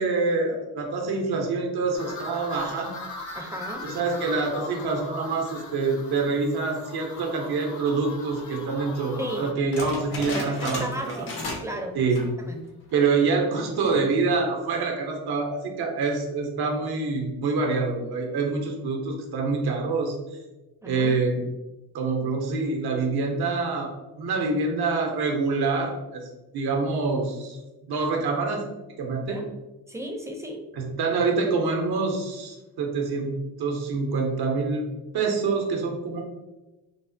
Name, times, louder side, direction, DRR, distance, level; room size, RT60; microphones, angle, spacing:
voice 1, 0.0-2.9 3.8-11.3 11.9-12.2 12.9-20.4 20.8-21.4 21.9-27.6 27.9-28.6 29.0-29.4 30.7-33.3 33.6-34.8 35.1-36.2, right 4 dB, 75° right, 1 dB, 0.6 m, -26 dB
sound 1, 1.9-9.5, left 3 dB, 50° left, 0.6 m, -40 dB
voice 2, 3.3-3.9 9.2-9.5 10.3-12.0 12.4-12.6 20.8-21.1 29.3-29.5 29.9-30.6, right 1 dB, 10° right, 3 dB, 0.4 m, -35 dB
sound 2, 9.7-11.8 12.0-12.4 12.9-13.0 13.7-14.1, left 2 dB, 80° left, 0.8 m, -34 dB
3.3 x 2.1 x 2.5 m, 1.1 s
cardioid pair, 60°, 38 cm